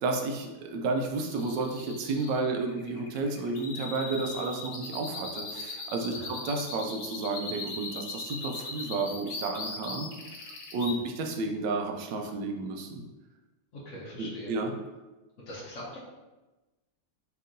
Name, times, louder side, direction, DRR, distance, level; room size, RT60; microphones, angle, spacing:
voice 1, 0.0-6.1 6.4-10.1 10.7-13.0 14.2-14.7, right 3 dB, 75° right, 3 dB, 1.2 m, -31 dB
sound 1, 1.2-10.9, left 3 dB, 90° left, 1.5 m, -39 dB
voice 2, 6.1-6.4 10.8-11.1 13.7-14.6 15.5-16.0, left 1 dB, 55° left, -8 dB, 1.0 m, -42 dB
4.5 x 2.9 x 2.5 m, 1.1 s
omnidirectional pair, 2.0 m